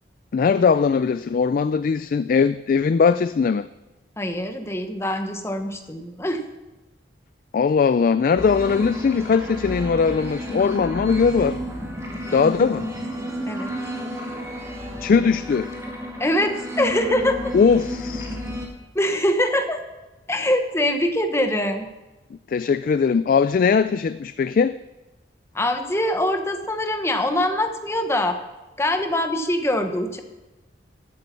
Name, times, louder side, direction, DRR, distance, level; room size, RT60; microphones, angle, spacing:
voice 1, 0.3-3.7 7.5-11.6 12.3-12.9 15.0-15.7 17.5-18.4 22.5-24.8, left 5 dB, 50° left, 13 dB, 0.3 m, -20 dB
voice 2, 4.2-6.4 13.4-13.7 16.2-17.5 18.9-19.8 20.3-21.9 25.5-28.4 28.8-30.2, left 1 dB, 15° left, 6 dB, 1.0 m, -23 dB
sound 1, 8.4-18.7, equal, 15° right, 1.9 m, -31 dB
13.0 x 8.4 x 5.4 m, 1.1 s
head